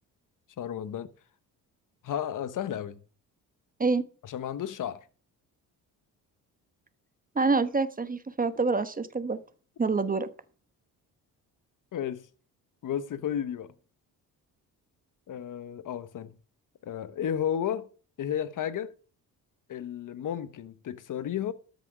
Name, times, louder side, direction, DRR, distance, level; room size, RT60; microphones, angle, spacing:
voice 1, 0.6-1.1 2.0-3.0 4.2-5.1 11.9-12.3 12.8-13.7 15.3-16.4 16.8-17.9 18.2-18.9 19.7-21.5, left 9 dB, 55° left, 1.1 m, -33 dB
voice 2, 7.3-9.4 9.8-10.3, right 4 dB, 20° right, 1.1 m, -26 dB
13.0 x 6.3 x 5.4 m
cardioid pair, 80°, 37 cm